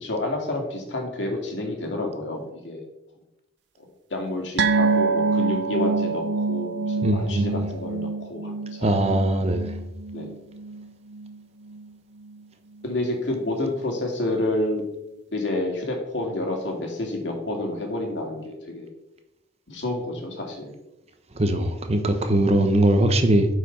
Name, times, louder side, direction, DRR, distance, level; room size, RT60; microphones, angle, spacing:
voice 1, 0.0-2.8 3.8-8.9 10.1-10.3 12.8-14.8 15.3-18.9 19.7-20.8, left 1 dB, 80° left, 2.2 m, -29 dB
sound 1, 4.6-11.4 11.7-11.9 12.3-12.4, right 4 dB, 70° right, 0.5 m, -26 dB
voice 2, 7.0-7.5 8.8-9.7 21.4-23.5, right 1 dB, 35° right, 1.0 m, -20 dB
8.5 x 5.0 x 5.5 m
head